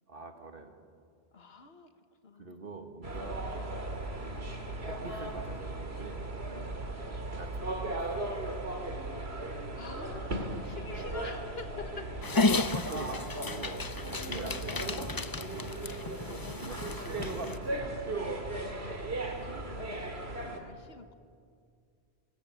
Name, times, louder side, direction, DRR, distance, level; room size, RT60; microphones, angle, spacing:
voice 1, 0.1-0.8 2.4-3.5 4.2-4.5 4.9-6.2 7.4-8.3 12.6-15.8 16.6-18.0, right 3 dB, 60° right, 5 dB, 2.1 m, -44 dB
voice 2, 1.3-1.9 2.2-2.7 6.4-6.7 9.1-12.1 14.0-14.7 15.7-16.9 18.5-21.1, left 4 dB, 70° left, 8 dB, 1.7 m, -48 dB
sound 1, 3.0-20.6, right 2 dB, 85° right, 2.7 m, -37 dB
Dog, 12.2-17.6, left 3 dB, 25° left, 0.5 m, -33 dB
24.0 x 20.0 x 9.2 m, 2.3 s
omnidirectional pair, 1.1 m